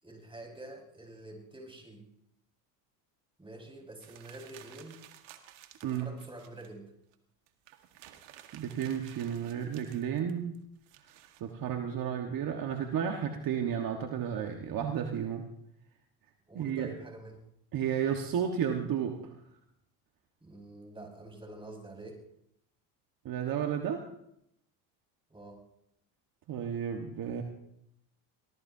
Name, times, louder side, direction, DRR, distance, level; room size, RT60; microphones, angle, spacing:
voice 1, 0.0-2.1 3.4-5.0 5.8-6.9 16.5-17.4 20.4-22.2 25.3-25.6, right 2 dB, 10° right, 0 dB, 5.3 m, -47 dB
sound 1, 4.0-6.7 7.1-7.2 7.5-11.4, right 12 dB, 70° right, 1.8 m, -54 dB
voice 2, 8.5-10.6 11.4-15.5 16.5-16.9 17.7-19.3 23.2-24.0 26.5-27.4, right 8 dB, 50° right, 3 dB, 1.6 m, -32 dB
23.5 x 19.0 x 2.8 m, 0.77 s
supercardioid pair, 95°, 44 cm